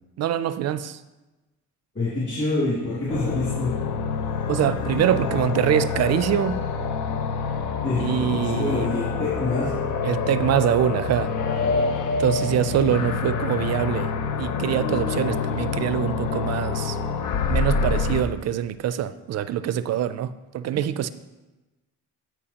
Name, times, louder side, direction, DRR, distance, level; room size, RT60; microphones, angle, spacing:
voice 1, 0.2-1.0 4.5-6.6 8.0-8.9 10.0-11.3 12.2-14.1 14.4-17.0 17.5-21.1, right 10 dB, 60° right, 0.4 m, -24 dB
voice 2, 1.9-3.7 7.8-9.7, left 2 dB, 40° left, 2.8 m, -26 dB
sound 1, 3.1-18.2, left 5 dB, 85° left, 0.7 m, -26 dB
14.0 x 4.7 x 2.9 m
cardioid pair, 90°, 30 cm